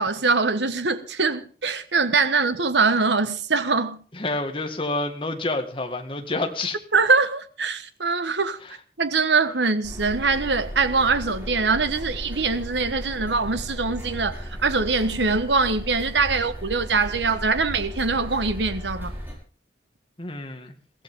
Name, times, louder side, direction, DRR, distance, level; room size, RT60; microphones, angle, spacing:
voice 1, 0.0-4.0 6.9-8.6 9.0-19.1, right 4 dB, 85° right, 1.4 m, -23 dB
voice 2, 4.1-6.8 20.2-20.7, left 2 dB, 30° left, 2.0 m, -28 dB
sound 1, 9.8-19.3, equal, 10° right, 6.3 m, -36 dB
22.0 x 15.5 x 3.8 m
head